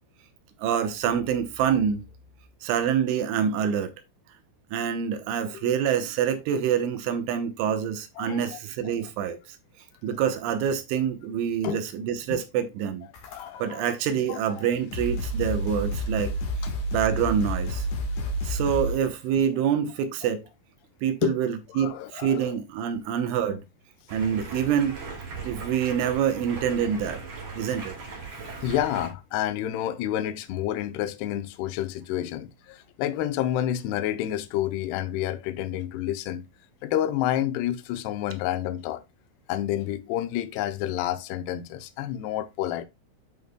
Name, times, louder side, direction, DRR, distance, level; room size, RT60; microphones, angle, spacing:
voice 1, 0.6-2.0 2.6-3.9 4.7-9.4 10.0-13.1 13.6-16.3 16.9-17.9 18.4-20.4 21.0-23.6 24.1-25.0 25.4-27.2 27.6-27.9, right 8 dB, 80° right, 3.3 m, -26 dB
voice 2, 8.2-8.6 8.8-8.9 11.6-11.8 12.3-12.4 13.3-13.9 14.3-14.7 21.2-21.3 21.7-22.5 23.0-23.1 28.6-36.4 36.8-39.0 39.5-42.9, left 12 dB, 80° left, 2.4 m, -29 dB
sound 1, 13.1-13.8 14.5-14.6 14.9-19.1, equal, 60° left, 2.0 m, -30 dB
Stream, 24.1-29.1, right 4 dB, 45° right, 2.8 m, -39 dB
11.5 x 5.6 x 2.2 m
omnidirectional pair, 5.5 m